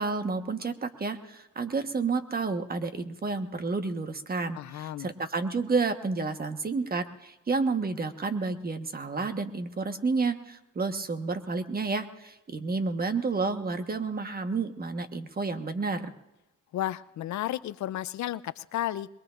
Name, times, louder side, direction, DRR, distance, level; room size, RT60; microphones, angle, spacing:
voice 1, 0.0-16.1, right 4 dB, 30° right, 7 dB, 1.3 m, -30 dB
voice 2, 4.5-5.1 16.7-19.1, left 13 dB, 70° left, 15 dB, 0.6 m, -33 dB
22.5 x 21.5 x 2.5 m, 0.97 s
cardioid pair, 90°, 30 cm